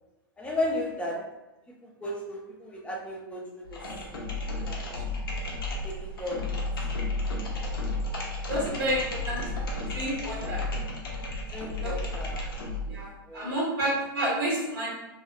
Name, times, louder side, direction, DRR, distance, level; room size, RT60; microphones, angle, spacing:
voice 1, 0.4-1.2 1.7-1.8 2.0-3.8 4.7-4.8 5.8-6.6 8.6-8.9 11.5-12.4 13.3-13.6, left 1 dB, 10° left, -2 dB, 0.5 m, -34 dB
sound 1, 3.6-13.0, left 2 dB, 75° left, 0.6 m, -33 dB
voice 2, 8.5-9.4 9.9-10.6 11.8-11.9 12.9-13.1 13.3-14.9, right 1 dB, 80° right, -7 dB, 1.0 m, -29 dB
2.6 x 2.0 x 2.5 m, 0.99 s
hypercardioid pair, 100°, 12 cm